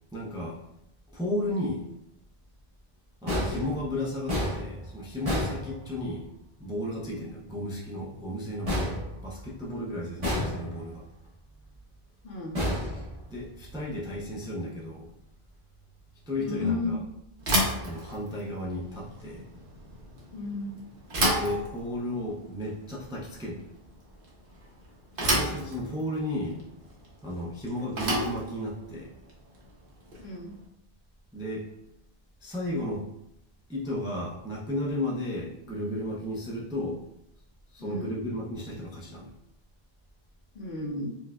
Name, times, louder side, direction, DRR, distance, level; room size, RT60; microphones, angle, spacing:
voice 1, 0.1-0.6 1.1-1.9 3.2-6.3 6.6-8.9 9.2-11.0 13.3-15.1 16.3-17.0 17.8-19.4 21.3-23.7 25.2-26.6 27.2-29.1 31.3-31.7 32.4-33.1 33.7-37.0 37.7-39.3, left 1 dB, 5° right, -5 dB, 0.4 m, -33 dB
sound 1, 3.3-6.3 8.7-9.7 10.2-11.0 12.5-13.6, left 1 dB, 35° right, 1.1 m, -31 dB
voice 2, 12.2-12.6 16.4-17.0 20.3-20.8 30.2-30.5 37.8-38.1 40.5-41.1, left 3 dB, 60° left, 0 dB, 0.8 m, -33 dB
Bicycle / Thump thud, 17.4-30.5, right 1 dB, 60° right, 1.0 m, -32 dB
4.5 x 2.2 x 2.3 m, 0.81 s
omnidirectional pair, 1.0 m